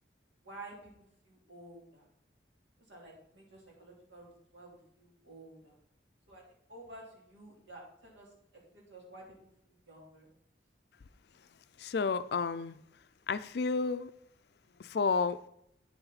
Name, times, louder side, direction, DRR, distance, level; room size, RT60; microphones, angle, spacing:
voice 1, 0.4-0.8 1.2-2.0 2.9-5.7 6.3-6.4 6.7-8.3 8.7-9.2 9.7-10.3, right 2 dB, 75° right, 3.0 m, -51 dB
voice 2, 11.8-12.8 13.3-14.1 14.8-15.4, left 4 dB, 60° left, 0.4 m, -31 dB
8.6 x 6.8 x 4.1 m
head